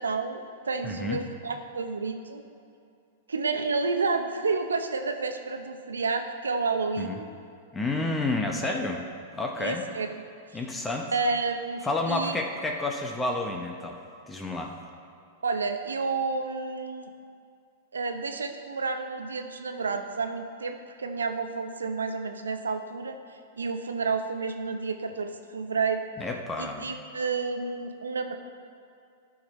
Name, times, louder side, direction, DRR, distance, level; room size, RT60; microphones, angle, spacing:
voice 1, 0.0-2.4 3.3-7.3 8.6-8.8 9.6-10.2 10.5-10.6 11.1-12.3 15.4-17.1 17.9-26.0 26.6-28.4, right 4 dB, 90° right, 7 dB, 0.7 m, -30 dB
voice 2, 0.8-1.2 7.0-7.2 7.7-9.0 9.3-9.8 10.5-11.1 11.8-14.0 14.3-14.7 26.2-26.9, left 2 dB, 15° left, 2 dB, 0.9 m, -30 dB
12.0 x 6.3 x 4.2 m, 2.5 s
hypercardioid pair, 110°, 0 cm